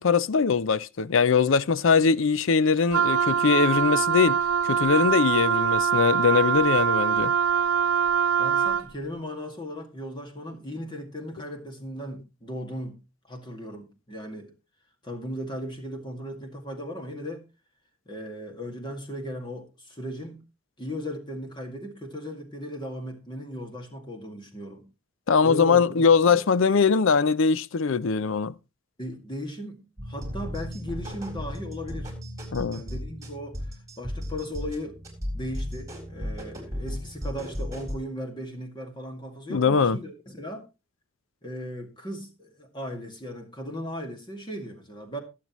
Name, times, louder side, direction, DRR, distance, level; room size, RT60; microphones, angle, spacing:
voice 1, 0.0-7.3 25.3-28.5 32.5-32.8 39.5-40.0, left 5 dB, 65° left, 0.5 m, -22 dB
Wind instrument woodwind instrument, 2.9-8.9, right 7 dB, 75° right, 0.7 m, -23 dB
voice 2, 8.4-13.0 13.3-14.5 15.0-17.4 18.1-20.4 20.8-24.9 25.4-26.4 29.0-32.1 32.7-35.0 35.3-40.7 41.4-45.2, equal, 20° left, 2.1 m, -37 dB
sound 1, 30.0-38.0, equal, 15° right, 3.8 m, -35 dB
20.0 x 7.7 x 3.1 m
head